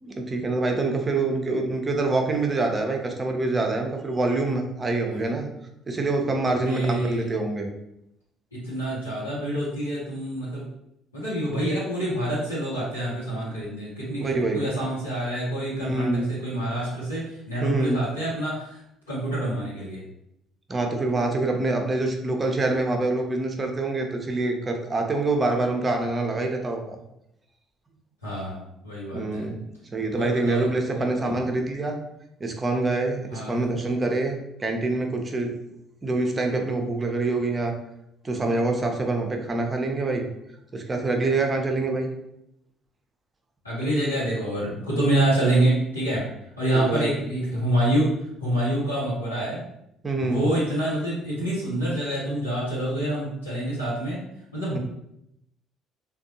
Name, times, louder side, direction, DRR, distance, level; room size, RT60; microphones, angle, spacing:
voice 1, 0.0-5.5 5.9-7.7 14.2-14.7 15.8-16.3 17.6-18.0 20.7-27.0 29.1-29.6 29.9-32.0 32.4-35.6 36.0-37.7 38.2-40.3 40.7-42.1 46.7-47.1 50.0-50.4 54.7-54.8, right 2 dB, 25° right, 3 dB, 0.6 m, -25 dB
voice 2, 6.5-7.3 8.5-10.6 11.1-18.8 19.1-20.0 28.2-29.5 30.1-31.5 33.3-33.6 43.6-46.3 46.6-48.1 48.4-49.6 50.2-54.2 54.5-54.8, right 1 dB, 85° left, -10 dB, 0.9 m, -27 dB
3.4 x 2.3 x 2.6 m, 0.80 s
figure-of-eight pair, 50°, 0 cm